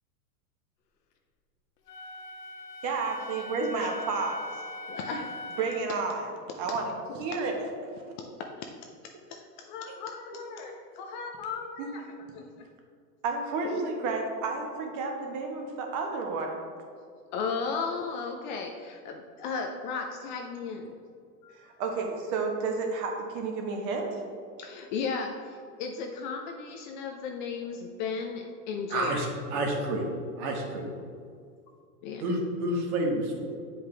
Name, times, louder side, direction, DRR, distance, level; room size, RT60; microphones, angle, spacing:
Wind instrument woodwind instrument, 1.9-6.0, left 1 dB, 80° left, 1.0 m, -41 dB
voice 1, 2.8-4.4 5.6-6.3 6.6-6.9 7.2-7.7 11.8-11.9 13.2-16.6 21.5-24.2, right 4 dB, 35° right, 2 dB, 1.2 m, -31 dB
voice 2, 4.9-5.3 7.1-7.2 8.5-8.7 9.3-12.0 12.3-12.4 13.7-13.9 17.3-20.9 21.4-21.6 24.6-29.3 32.0-32.2, left 5 dB, 35° left, 2 dB, 0.4 m, -35 dB
voice 3, 28.9-30.1 30.4-30.9 32.2-33.5, right 1 dB, 60° right, 1 dB, 1.6 m, -29 dB
7.9 x 5.0 x 3.3 m, 2.2 s
hypercardioid pair, 125°, 48 cm